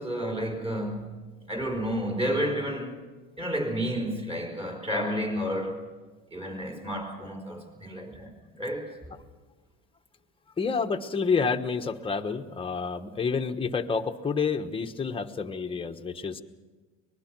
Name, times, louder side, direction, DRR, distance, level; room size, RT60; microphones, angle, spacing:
voice 1, 0.0-3.0 3.4-5.9 6.3-9.2, equal, 20° right, 4.7 m, -31 dB
voice 2, 10.6-16.4, left 5 dB, 20° left, 1.2 m, -29 dB
25.0 x 20.0 x 6.1 m
supercardioid pair, 120°, 30 cm